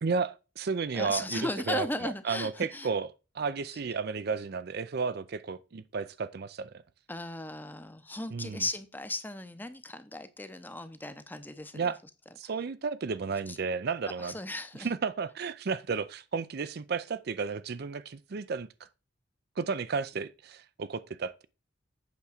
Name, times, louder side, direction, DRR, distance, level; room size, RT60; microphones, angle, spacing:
voice 1, 0.0-3.1 3.3-6.7 8.3-8.6 11.7-12.0 12.4-14.3 14.8-18.7 19.6-21.5, right 5 dB, 55° right, 0.5 m, -33 dB
voice 2, 0.9-2.9 7.1-11.9 13.5-13.6 14.2-14.9, left 2 dB, 10° left, 0.7 m, -36 dB
8.4 x 3.6 x 6.5 m
head